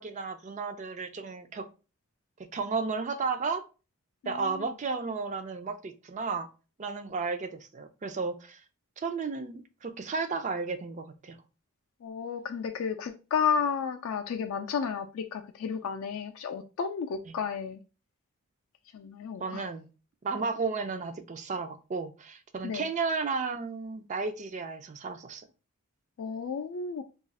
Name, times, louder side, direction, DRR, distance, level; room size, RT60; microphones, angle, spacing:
voice 1, 0.0-1.7 2.5-3.6 4.3-6.5 6.8-8.6 9.0-11.4 17.3-17.4 19.4-19.9 20.2-25.4, right 4 dB, 35° right, 0.3 m, -33 dB
voice 2, 4.2-4.7 12.0-17.8 18.9-19.6 22.6-22.8 26.2-27.0, left 6 dB, 70° left, 0.3 m, -32 dB
2.4 x 2.3 x 4.0 m
head